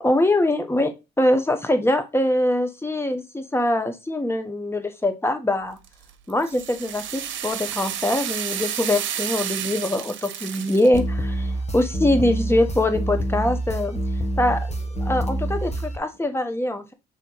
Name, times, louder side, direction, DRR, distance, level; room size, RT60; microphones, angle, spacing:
voice 1, 0.0-5.8 6.3-14.0 14.4-14.7 15.0-16.9, left 1 dB, 10° left, 8 dB, 1.3 m, -23 dB
sound 1, 5.8-11.0, right 10 dB, 75° right, 1.0 m, -31 dB
sound 2, 10.9-16.0, right 1 dB, 35° left, 1.7 m, -27 dB
6.9 x 3.4 x 4.7 m, 0.26 s
cardioid pair, 90°, 20 cm